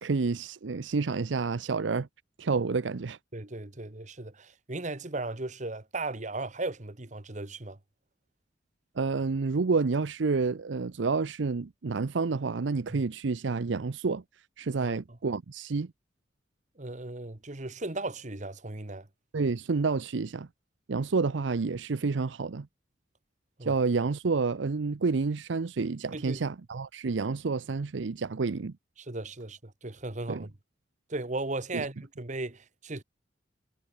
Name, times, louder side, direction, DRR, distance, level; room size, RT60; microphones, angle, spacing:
voice 1, 0.0-2.1 2.4-3.2 9.0-14.2 14.6-15.9 19.3-20.5 20.9-22.7 23.6-28.7 30.3-30.5 31.7-31.9, right 4 dB, 80° right, 0.6 m, -29 dB
voice 2, 3.3-7.8 12.9-13.0 14.8-15.0 16.8-19.1 23.6-23.7 26.1-26.4 29.0-30.5 31.1-33.0, right 2 dB, 40° right, 1.5 m, -36 dB
head